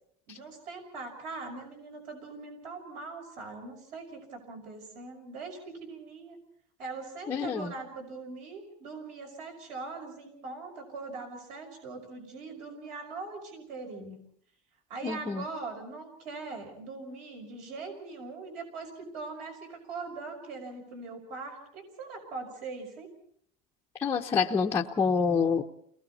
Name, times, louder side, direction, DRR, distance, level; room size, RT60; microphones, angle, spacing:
voice 1, 0.3-6.4 6.8-14.2 14.9-23.1, right 3 dB, 50° right, 4 dB, 5.8 m, -41 dB
voice 2, 7.3-7.7 15.0-15.4 24.0-25.6, left 5 dB, 15° left, 0 dB, 0.8 m, -27 dB
30.0 x 20.5 x 4.2 m, 0.66 s
cardioid pair, 165°, 16 cm